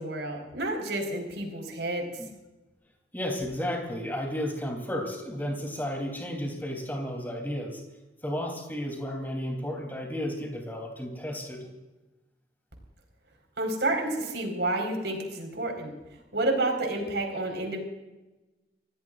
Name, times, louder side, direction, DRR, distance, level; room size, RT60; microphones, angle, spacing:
voice 1, 0.0-2.0 13.6-15.9 16.3-17.8, right 2 dB, 85° right, 3 dB, 4.8 m, -29 dB
voice 2, 3.1-7.8 8.2-11.7, equal, 10° left, 1 dB, 3.4 m, -33 dB
28.0 x 17.5 x 2.6 m, 1.1 s
head